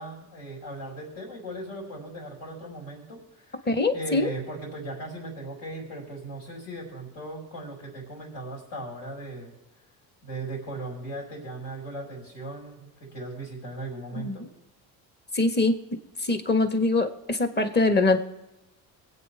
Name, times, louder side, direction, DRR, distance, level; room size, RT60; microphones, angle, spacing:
voice 1, 0.0-3.6 3.9-9.5 10.2-14.5, right 2 dB, 70° left, -5 dB, 5.3 m, -38 dB
voice 2, 3.7-4.3 14.2-14.4 15.3-15.8 16.3-18.2, left 2 dB, 20° left, 7 dB, 1.4 m, -23 dB
23.0 x 8.4 x 3.4 m, 0.98 s
supercardioid pair, 65°, 44 cm